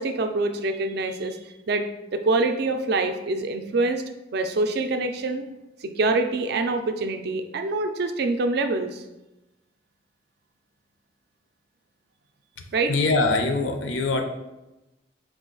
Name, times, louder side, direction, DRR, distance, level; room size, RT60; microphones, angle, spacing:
voice 1, 0.0-1.4 1.7-1.8 2.1-4.0 4.3-5.5 5.8-9.0 12.7-12.9, right 3 dB, 60° right, 7 dB, 0.4 m, -25 dB
voice 2, 12.9-14.2, left 3 dB, 90° left, 5 dB, 0.5 m, -23 dB
4.8 x 2.3 x 3.8 m, 0.99 s
head